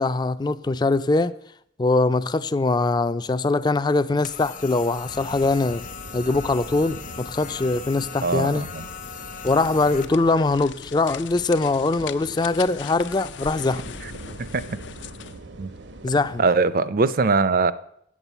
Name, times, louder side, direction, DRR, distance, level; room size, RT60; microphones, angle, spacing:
voice 1, 0.0-1.3 1.8-5.8 6.1-8.7 9.4-13.9 16.0-16.4, left 3 dB, 25° left, 0.3 m, -22 dB
sound 1, 4.2-10.0, left 8 dB, 45° left, 0.7 m, -39 dB
sound 2, 5.1-10.2 11.3-11.4 12.0-12.3 13.4-16.4, right 2 dB, 80° right, 1.0 m, -42 dB
voice 2, 8.2-8.9 14.5-14.6 15.6-15.7 16.4-17.7, right 4 dB, 50° right, 0.5 m, -21 dB
sound 3, 9.4-15.4, left 7 dB, 80° left, 0.5 m, -39 dB
8.8 x 7.4 x 8.0 m
head